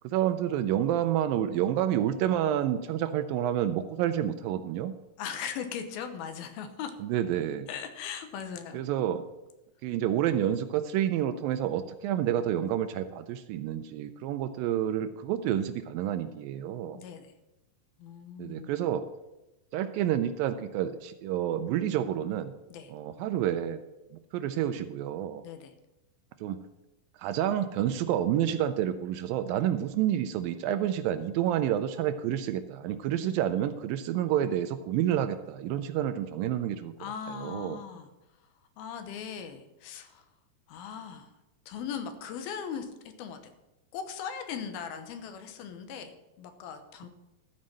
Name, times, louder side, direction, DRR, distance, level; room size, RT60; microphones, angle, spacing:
voice 1, 0.0-4.9 7.0-7.7 8.7-9.2 9.8-17.0 18.4-19.1 19.7-22.5 22.9-23.8 24.1-25.4 26.4-26.6 27.2-36.9 37.3-37.8, right 11 dB, 80° right, 10 dB, 2.2 m, -29 dB
voice 2, 5.2-6.9 7.7-8.8 16.9-17.3 18.0-18.7 22.7-22.9 25.4-25.7 37.0-38.1 38.8-40.3 40.7-41.3 41.7-42.9 43.2-43.5 43.9-47.1, left 7 dB, 85° left, 8 dB, 2.8 m, -39 dB
13.0 x 5.3 x 7.5 m, 0.99 s
omnidirectional pair, 4.4 m